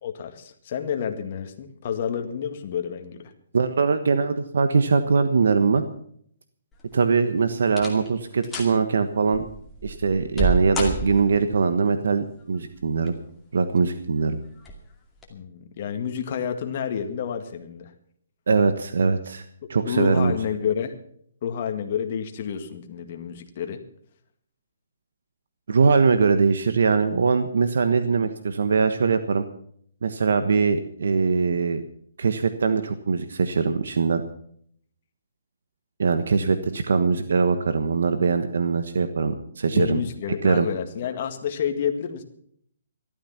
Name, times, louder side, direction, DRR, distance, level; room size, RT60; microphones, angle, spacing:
voice 1, 0.0-3.3 15.3-17.9 19.6-20.9 21.4-23.8 36.4-36.6 39.7-42.2, left 8 dB, 35° left, 6 dB, 1.9 m, -29 dB
voice 2, 3.5-5.8 6.9-9.4 9.8-13.1 13.5-14.4 18.5-19.4 19.7-20.3 25.7-29.4 30.0-31.8 32.2-34.2 36.0-40.0 40.4-40.7, right 5 dB, 70° right, 10 dB, 1.3 m, -22 dB
sound 1, 6.7-7.2 7.7-8.1 8.4-8.8 9.3-11.5 12.7-13.3 13.8-13.9 14.6-14.8 15.2-15.3, right 2 dB, 10° left, 2.4 m, -29 dB
14.5 x 13.0 x 5.8 m, 0.64 s
hypercardioid pair, 170°, 0 cm